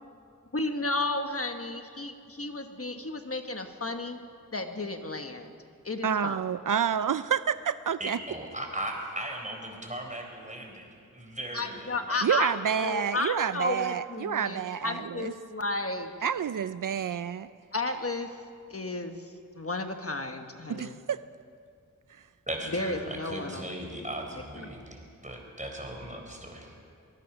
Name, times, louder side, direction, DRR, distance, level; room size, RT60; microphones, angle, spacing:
voice 1, 0.5-4.2 4.5-5.5 5.8-6.4 11.5-16.1 17.7-18.3 18.7-21.0 22.7-24.7, left 2 dB, 45° left, 5 dB, 1.3 m, -33 dB
voice 2, 6.0-8.2 12.2-15.3 16.2-17.5 20.7-21.2, right 8 dB, 75° right, 14 dB, 0.5 m, -29 dB
voice 3, 8.0-10.9 11.1-12.4 22.5-23.0 23.2-26.7, right 1 dB, 25° right, 1 dB, 4.6 m, -38 dB
24.0 x 19.5 x 6.0 m, 2.3 s
wide cardioid pair, 70°, 32 cm